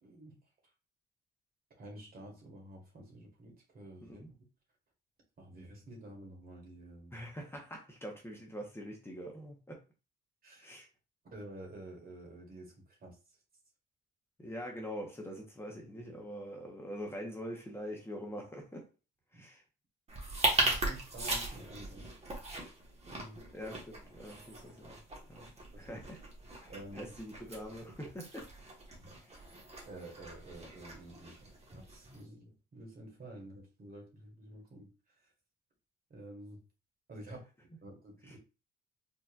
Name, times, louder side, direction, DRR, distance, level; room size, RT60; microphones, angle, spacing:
voice 1, 0.0-0.4 1.8-4.2 5.4-7.2 10.4-10.8 11.3-12.7 13.0-13.2 19.3-19.4 20.6-22.1 23.1-23.4 25.7-26.0 26.7-27.1 28.9-29.2 29.8-34.9 36.1-36.6 37.1-37.4 37.8-38.4, right 1 dB, 50° right, 1.8 m, -50 dB
voice 2, 7.1-9.8 10.6-10.9 14.4-18.9 19.3-19.6 23.3-25.0 25.3-26.2 26.6-28.5 29.3-29.4 38.3-38.4, equal, 10° left, 1.1 m, -44 dB
sound 1, 20.1-32.2, right 2 dB, 30° right, 1.5 m, -38 dB
4.3 x 3.0 x 2.5 m
cardioid pair, 90°, 20 cm